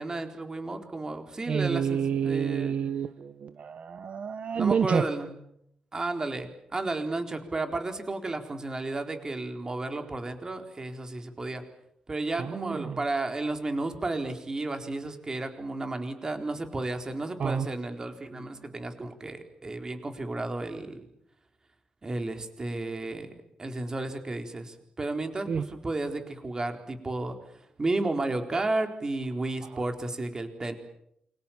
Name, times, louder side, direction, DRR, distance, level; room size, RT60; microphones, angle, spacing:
voice 1, 0.0-2.8 4.5-5.3 5.9-11.6 12.1-21.1 22.0-23.3 23.6-30.8, right 2 dB, 25° right, 6 dB, 4.2 m, -33 dB
voice 2, 1.5-5.1 12.4-13.0 17.4-17.7 25.5-25.6 29.7-29.8, right 7 dB, 55° right, 11 dB, 1.2 m, -29 dB
28.5 x 25.5 x 7.4 m, 0.74 s
wide cardioid pair, 130°, 3 cm